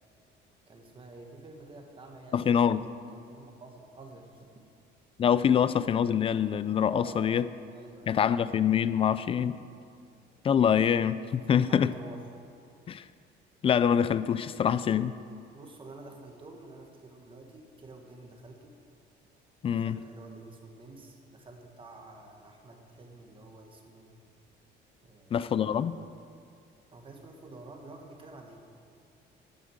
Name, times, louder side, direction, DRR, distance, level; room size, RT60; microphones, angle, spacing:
voice 1, 0.7-4.5 6.8-7.4 7.7-8.2 11.4-12.4 15.5-18.8 19.7-24.2 25.0-25.9 26.9-28.6, right 2 dB, 25° right, 1.7 m, -49 dB
voice 2, 2.3-2.9 5.2-7.5 8.1-9.6 10.4-11.9 12.9-13.0 13.6-15.2 19.6-20.0 25.3-26.0, left 8 dB, 30° left, 0.4 m, -25 dB
12.0 x 9.6 x 7.9 m
cardioid pair, 160°, 20 cm